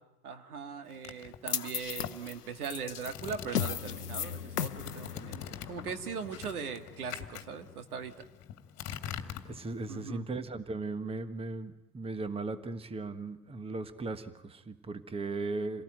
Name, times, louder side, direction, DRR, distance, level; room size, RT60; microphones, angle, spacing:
voice 1, 0.2-8.3 9.9-10.3, right 6 dB, 70° right, 7 dB, 2.2 m, -40 dB
sound 1, 0.9-4.0 4.3-10.1, left 9 dB, 35° left, 2.2 m, -44 dB
sound 2, 1.5-7.7, left 9 dB, 85° left, 0.8 m, -37 dB
voice 2, 9.4-15.8, right 3 dB, 10° right, 11 dB, 1.4 m, -37 dB
28.0 x 18.0 x 9.2 m, 0.92 s
figure-of-eight pair, 90°, 45 cm